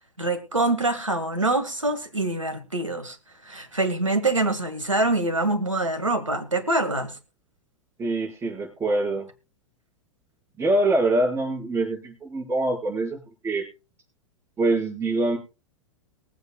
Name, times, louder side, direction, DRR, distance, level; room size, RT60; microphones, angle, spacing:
voice 1, 0.2-3.2 3.5-7.2, right 2 dB, 85° right, 10 dB, 1.7 m, -25 dB
voice 2, 8.0-9.3 10.6-13.7 14.6-15.4, right 2 dB, 15° right, -2 dB, 5.1 m, -24 dB
22.5 x 8.1 x 2.2 m, 0.32 s
figure-of-eight pair, 95°, 16 cm